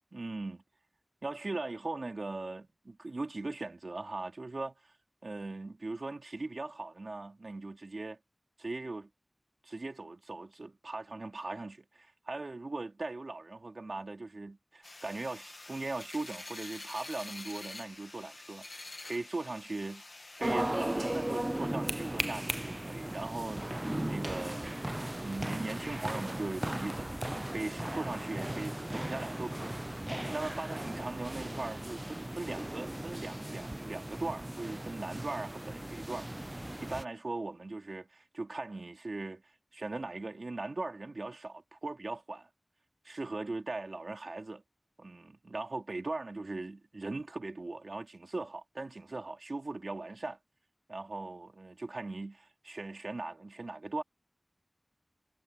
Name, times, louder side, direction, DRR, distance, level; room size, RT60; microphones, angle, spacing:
voice 1, 0.1-0.6 1.2-4.9 5.2-8.2 8.6-9.1 9.6-20.0 20.4-24.8 25.2-36.3 36.8-39.4 39.7-42.5 43.0-44.6 45.0-50.4 50.9-54.0, right 2 dB, 85° right, 3.0 m, -39 dB
sound 1, 14.8-20.5, left 2 dB, 65° left, 1.8 m, -47 dB
sound 2, 20.4-37.0, right 1 dB, 25° right, 0.4 m, -37 dB
wide cardioid pair, 45°, 0 cm